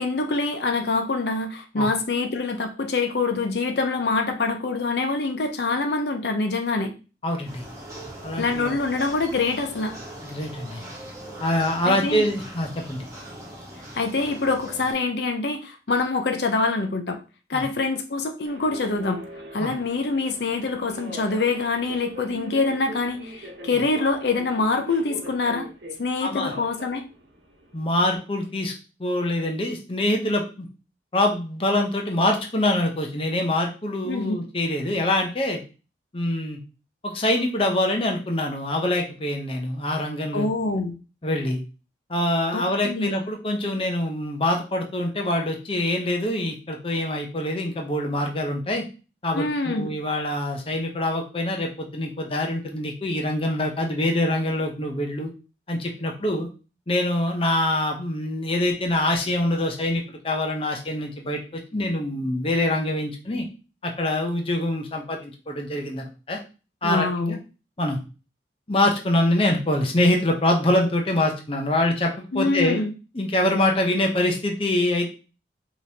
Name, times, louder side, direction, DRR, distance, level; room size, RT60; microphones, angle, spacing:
voice 1, 0.0-6.9 8.4-9.9 11.9-12.3 13.9-17.2 17.5-19.2 19.5-25.7 26.0-27.0 34.0-34.3 40.3-40.9 42.5-43.2 49.3-49.9 66.8-67.4 72.3-72.9, left 3 dB, 70° left, 5 dB, 0.6 m, -25 dB
voice 2, 7.2-7.6 8.2-8.7 10.2-10.8 11.4-13.0 17.5-17.6 19.6-19.7 26.2-26.5 27.7-28.7 29.0-30.7 31.1-35.6 36.1-36.6 37.0-40.5 41.2-41.6 42.1-48.8 49.2-55.3 55.7-56.5 56.9-63.5 63.8-66.4 66.8-67.4 67.8-68.0 68.7-72.8 73.1-75.1, left 1 dB, 30° left, 2 dB, 0.7 m, -24 dB
sound 1, 7.4-14.9, right 1 dB, 20° right, 1.2 m, -40 dB
Subway metro underground, 18.4-28.2, right 1 dB, 75° right, 1.0 m, -41 dB
5.0 x 3.0 x 2.8 m, 0.33 s
head